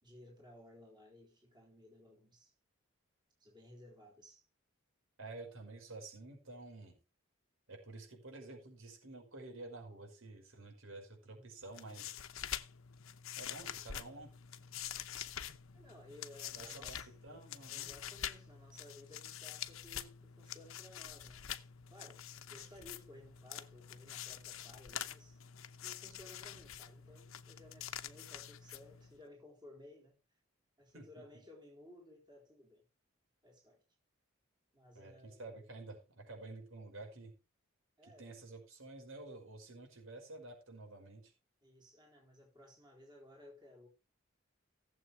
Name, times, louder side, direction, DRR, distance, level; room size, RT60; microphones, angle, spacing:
voice 1, 0.0-2.5 3.4-4.5 11.3-11.5 15.7-17.2 17.7-21.6 21.9-25.5 25.8-30.2 30.8-32.8 33.4-33.8 34.7-35.7 38.0-38.4 41.6-43.9, left 1 dB, 20° right, 4.0 m, -58 dB
voice 2, 5.2-7.0 7.7-12.1 13.4-14.3 16.6-17.0 17.2-17.9 30.9-31.2 35.0-37.3 38.0-41.3, right 2 dB, 85° right, 5.4 m, -50 dB
sound 1, 11.6-29.2, left 10 dB, 85° left, 0.9 m, -46 dB
17.5 x 7.7 x 3.4 m
head